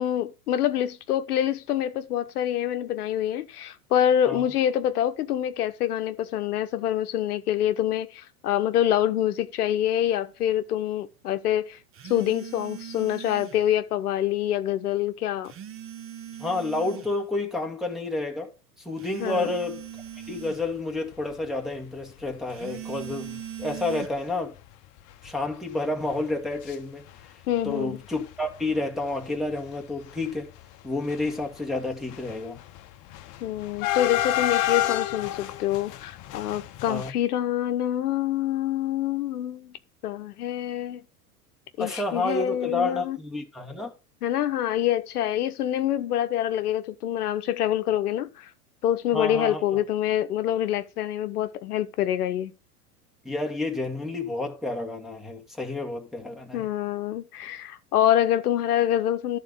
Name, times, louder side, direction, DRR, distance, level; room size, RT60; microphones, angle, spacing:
voice 1, 0.0-11.8 12.0-15.5 19.2-19.5 27.5-28.0 33.4-39.8 40.0-41.0 41.8-43.2 44.2-48.5 48.8-52.5 56.5-59.4, left 11 dB, 75° left, 0.9 m, -26 dB
sound 1, 11.9-13.7 15.4-17.2 19.0-20.7 22.5-24.1, right 10 dB, 30° right, 1.0 m, -40 dB
voice 2, 16.4-18.5 18.8-19.9 20.3-24.5 25.2-27.0 27.6-30.5 30.8-32.6 36.9-37.1 41.8-43.9 49.1-49.8 53.2-56.7, left 2 dB, ahead, 1.6 m, -30 dB
sound 2, 21.1-21.3 21.8-21.9 22.1-22.3 23.1-23.2 23.6-23.8 24.1-24.2 24.5-26.8 27.0-27.7 28.0-37.1, left 14 dB, 40° left, 0.9 m, -31 dB
11.5 x 4.1 x 5.4 m
hypercardioid pair, 95°, 46 cm